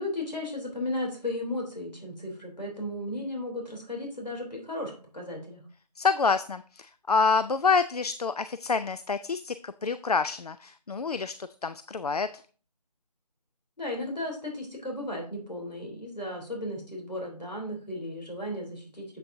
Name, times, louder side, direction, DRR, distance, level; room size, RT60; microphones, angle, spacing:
voice 1, 0.0-5.6 13.8-19.0, left 1 dB, 85° left, 1 dB, 3.2 m, -35 dB
voice 2, 6.0-11.3 11.6-12.3, left 4 dB, 65° left, 13 dB, 0.4 m, -27 dB
7.7 x 7.5 x 2.6 m, 0.40 s
figure-of-eight pair, 165°, 21 cm